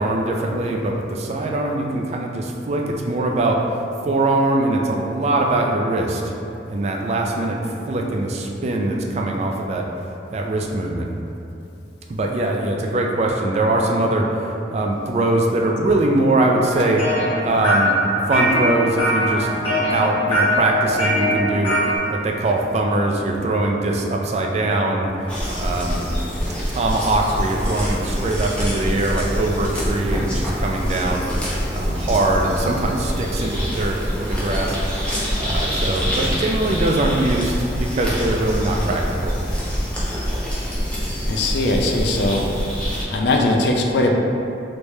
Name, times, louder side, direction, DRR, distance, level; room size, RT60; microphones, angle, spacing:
voice 1, 0.0-3.6 4.0-6.2 6.7-7.6 7.9-9.9 10.3-11.1 12.1-17.1 17.4-17.9 18.3-21.8 22.1-25.1 25.5-26.1 26.7-31.3 31.7-34.8 35.4-39.3, right 2 dB, 35° right, 1 dB, 0.3 m, -22 dB
sound 1, 16.6-22.0, equal, 30° left, 1.0 m, -21 dB
sound 2, 25.3-43.0, equal, 5° left, 0.6 m, -25 dB
voice 2, 41.3-42.5 43.1-44.1, left 2 dB, 65° left, 1 dB, 0.4 m, -20 dB
3.2 x 3.2 x 2.7 m, 2.7 s
head